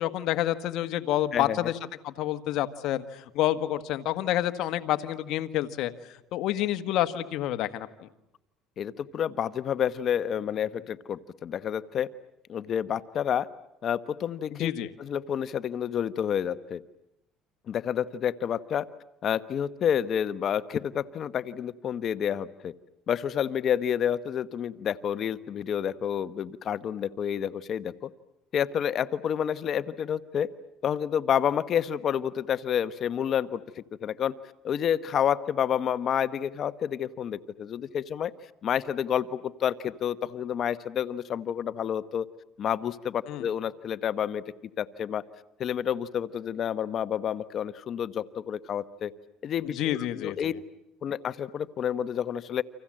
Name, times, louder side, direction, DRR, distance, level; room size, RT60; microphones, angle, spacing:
voice 1, 0.0-1.7 2.0-5.9 6.3-8.1 14.5-14.9 43.3-43.4 49.7-50.4, left 13 dB, 65° left, 9 dB, 1.5 m, -28 dB
voice 2, 1.3-1.7 8.8-12.1 12.5-13.5 13.8-14.7 15.0-16.8 17.7-18.9 19.2-22.7 23.1-28.1 28.5-30.5 30.8-34.3 34.6-38.3 38.6-42.3 42.6-44.4 44.8-45.2 45.6-49.1 49.4-50.5 51.0-52.6, left 9 dB, 45° left, 14 dB, 1.1 m, -29 dB
29.5 x 26.0 x 7.7 m, 0.82 s
cardioid pair, 110°, 0 cm